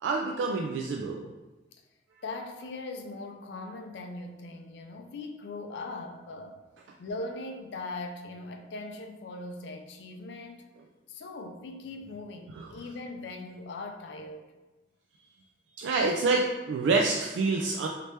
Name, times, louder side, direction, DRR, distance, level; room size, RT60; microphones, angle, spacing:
voice 1, 0.0-1.2 12.6-12.7 15.8-17.9, right 3 dB, 90° right, 0.3 m, -27 dB
voice 2, 2.2-6.6 7.0-10.7 11.1-14.4, left 2 dB, 70° left, 0.4 m, -40 dB
3.2 x 2.8 x 3.0 m
head